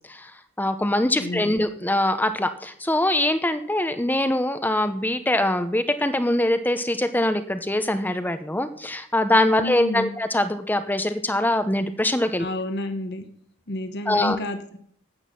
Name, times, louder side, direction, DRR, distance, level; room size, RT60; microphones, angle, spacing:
voice 1, 0.6-12.5 14.1-14.4, left 1 dB, 10° left, 10 dB, 0.8 m, -23 dB
voice 2, 1.2-1.6 9.6-10.1 12.4-13.2 13.7-14.8, left 2 dB, 50° left, 7 dB, 1.1 m, -30 dB
12.5 x 8.9 x 5.9 m, 0.64 s
head